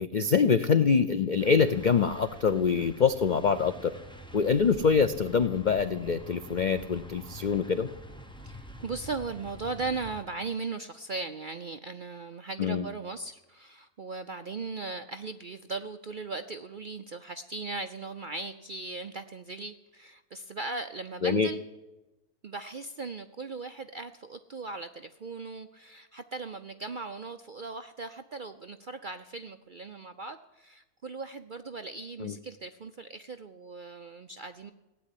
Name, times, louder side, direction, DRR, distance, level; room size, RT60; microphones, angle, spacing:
voice 1, 0.0-3.9 4.3-7.9 12.6-12.8 21.2-21.5 32.2-32.3, left 6 dB, 85° left, 11 dB, 0.4 m, -25 dB
sound 1, 1.4-10.2, equal, 5° left, 0.8 m, -47 dB
voice 2, 8.4-21.6 22.4-34.7, right 3 dB, 60° right, 8 dB, 0.5 m, -38 dB
17.0 x 8.5 x 9.9 m, 1.0 s
omnidirectional pair, 1.6 m